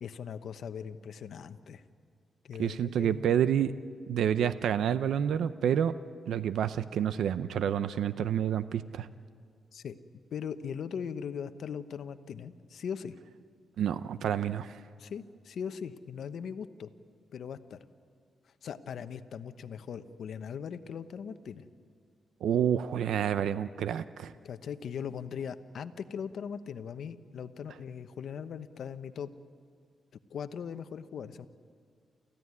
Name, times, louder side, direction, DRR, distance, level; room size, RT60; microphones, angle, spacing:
voice 1, 0.0-1.8 2.4-3.4 9.7-10.0 10.3-13.2 15.0-16.9 17.3-17.8 18.6-21.6 24.4-29.3 30.3-31.5, left 7 dB, 70° left, 10 dB, 1.0 m, -39 dB
voice 2, 2.6-3.7 4.1-5.9 6.3-9.1 13.8-14.8 22.4-24.3, right 9 dB, 85° right, 13 dB, 0.6 m, -28 dB
29.0 x 15.0 x 9.7 m, 2.2 s
cardioid pair, 100°, 0 cm